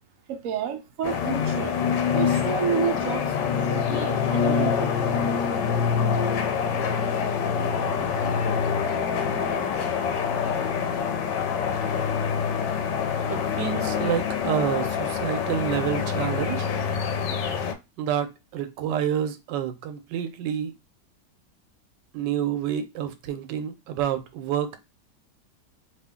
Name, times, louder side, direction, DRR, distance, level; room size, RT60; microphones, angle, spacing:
voice 1, 0.3-1.8 2.1-3.3 3.7-4.9, right 8 dB, 70° right, 0.8 m, -30 dB
sound 1, 1.0-17.7, left 6 dB, 80° left, 1.2 m, -25 dB
voice 2, 13.3-16.7 18.0-20.7 22.1-24.8, right 9 dB, 90° right, 1.2 m, -28 dB
2.9 x 2.5 x 3.6 m
omnidirectional pair, 1.9 m